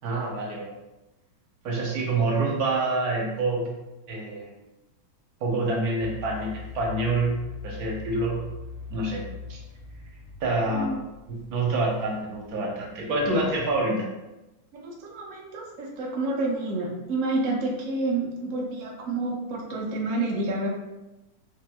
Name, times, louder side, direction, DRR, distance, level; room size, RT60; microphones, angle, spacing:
voice 1, 0.0-0.7 1.6-3.7 4.1-4.5 5.4-6.5 6.7-8.4 8.9-9.2 9.5-9.6 10.4-10.9 11.3-14.1, right 2 dB, 60° right, -2 dB, 1.1 m, -27 dB
sound 1, 6.0-13.8, left 5 dB, 40° left, 1.4 m, -42 dB
voice 2, 10.7-11.0 14.7-20.7, right 2 dB, 80° right, -2 dB, 0.6 m, -29 dB
5.1 x 2.8 x 2.3 m, 1.0 s
omnidirectional pair, 2.2 m